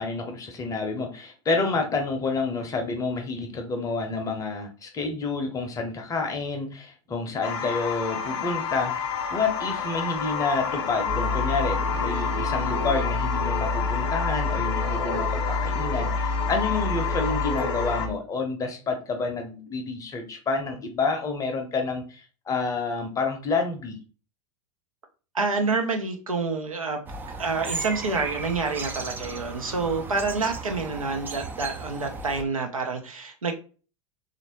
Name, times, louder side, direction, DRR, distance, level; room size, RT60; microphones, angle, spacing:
voice 1, 0.0-24.0, left 4 dB, 20° left, 4 dB, 0.6 m, -29 dB
sound 1, 7.4-18.1, left 7 dB, 55° left, 0.6 m, -30 dB
sound 2, 11.1-18.1, left 2 dB, 50° right, 1.3 m, -29 dB
voice 2, 25.3-27.0 27.4-33.5, right 4 dB, 80° right, 3 dB, 0.6 m, -28 dB
sound 3, 27.1-32.4, right 3 dB, 10° right, 0.3 m, -36 dB
3.2 x 2.5 x 2.9 m, 0.36 s
figure-of-eight pair, 85°, 17 cm